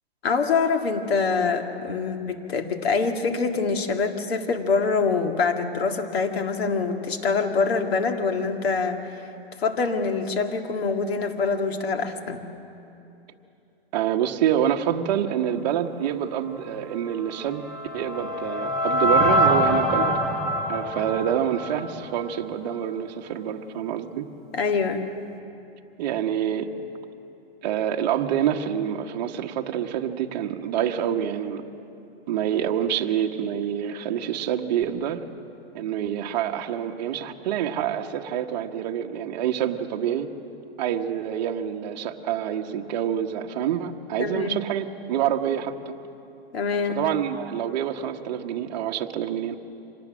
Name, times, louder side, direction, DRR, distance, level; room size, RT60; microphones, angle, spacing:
voice 1, 0.2-9.0 9.6-12.4 24.5-25.1 44.2-44.6 46.5-47.0, left 4 dB, 75° left, 5 dB, 2.0 m, -25 dB
voice 2, 13.9-17.7 17.9-20.2 20.7-24.3 26.0-26.7 27.6-31.6 32.3-35.2 35.7-40.3 40.8-45.9 46.9-49.6, right 10 dB, 40° right, 4 dB, 1.2 m, -27 dB
sound 1, 17.2-22.4, equal, ahead, 0.5 m, -24 dB
25.5 x 18.5 x 6.2 m, 2.8 s
hypercardioid pair, 155°, 31 cm